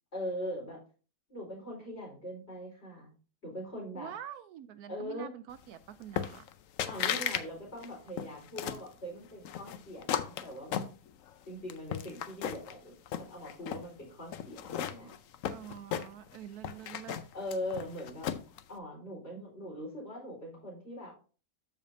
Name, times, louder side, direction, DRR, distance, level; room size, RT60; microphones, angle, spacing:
voice 1, 0.1-0.8 1.3-3.1 3.4-4.1 4.9-5.3 6.9-10.8 11.4-15.1 16.8-17.0 17.3-18.3 18.7-21.1, equal, 40° left, 4.7 m, -41 dB
voice 2, 3.9-6.4 15.5-17.2 19.3-19.4, right 10 dB, 75° right, 1.0 m, -46 dB
sound 1, 6.2-6.5 6.8-7.5 7.8-8.9 9.5-11.3 11.7-12.7 13.1-13.9 14.3-16.4 16.6-18.6, left 9 dB, 65° left, 0.9 m, -35 dB
13.5 x 5.2 x 2.7 m
omnidirectional pair, 1.7 m